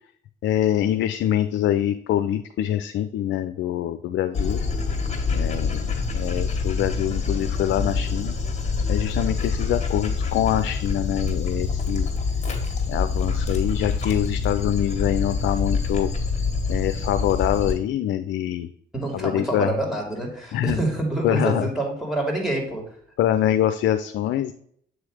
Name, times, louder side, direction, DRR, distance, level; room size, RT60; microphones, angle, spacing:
voice 1, 0.4-4.6 5.3-8.3 8.9-12.1 12.9-16.1 16.7-18.7 19.1-19.7 20.5-20.8 21.2-21.7 23.2-24.5, left 11 dB, 70° left, 9 dB, 0.4 m, -24 dB
Dog, 4.3-17.7, left 4 dB, 35° left, 1.6 m, -26 dB
voice 2, 18.9-22.9, right 2 dB, ahead, -1 dB, 2.3 m, -27 dB
7.8 x 3.2 x 4.8 m, 0.64 s
cardioid pair, 90°, 20 cm